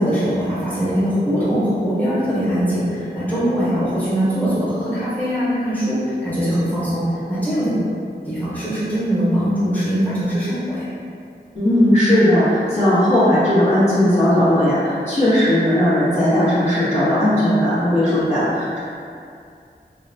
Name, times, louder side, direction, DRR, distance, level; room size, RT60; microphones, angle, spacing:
voice 1, 0.0-7.7 8.3-10.9, equal, 10° left, -12 dB, 1.2 m, -21 dB
voice 2, 11.5-18.8, left 1 dB, 35° left, -14 dB, 0.9 m, -17 dB
2.7 x 2.2 x 2.6 m, 2.4 s
wide cardioid pair, 55°, 19 cm